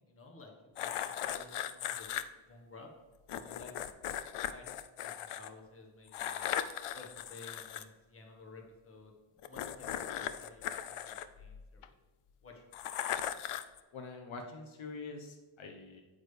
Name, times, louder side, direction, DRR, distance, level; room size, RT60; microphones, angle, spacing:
voice 1, 0.0-2.1 2.5-2.9 3.3-3.7 4.5-6.5 6.9-11.9 12.4-12.9, left 3 dB, 25° left, 1 dB, 1.3 m, -54 dB
sound 1, 0.8-2.2 3.3-5.5 6.1-7.8 9.4-11.9 12.7-13.8, left 10 dB, 85° left, 0.6 m, -38 dB
voice 2, 13.9-16.0, left 3 dB, 70° left, 3 dB, 1.0 m, -45 dB
8.9 x 8.4 x 3.3 m, 1.3 s
wide cardioid pair, 165°, 49 cm